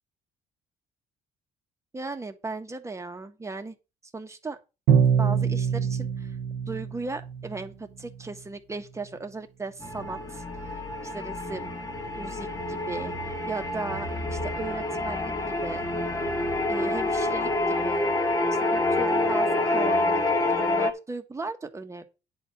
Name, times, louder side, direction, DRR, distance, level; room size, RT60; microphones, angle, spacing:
voice 1, 1.9-3.7 4.1-4.6 5.2-6.4 6.7-10.8 11.0-11.7 12.2-15.9 16.7-18.1 18.5-22.0, right 3 dB, 15° right, 1.6 m, -37 dB
Bowed string instrument, 4.9-7.7, right 7 dB, 90° right, 1.3 m, -24 dB
sound 1, 9.8-20.9, left 2 dB, 20° left, 1.7 m, -27 dB
10.0 x 4.4 x 7.2 m
cardioid pair, 110°, 17 cm